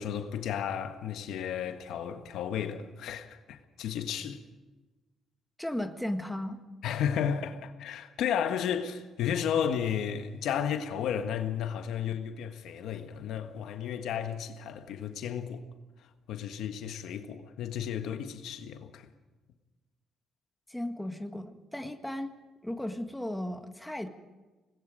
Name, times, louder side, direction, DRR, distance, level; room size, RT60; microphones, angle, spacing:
voice 1, 0.0-4.4 6.8-15.6 16.3-19.1, left 8 dB, 80° left, 1.5 m, -33 dB
voice 2, 5.6-6.6 20.7-22.4 22.6-24.1, left 1 dB, 5° left, 1.7 m, -35 dB
26.0 x 20.0 x 5.2 m
cardioid pair, 90°, 0 cm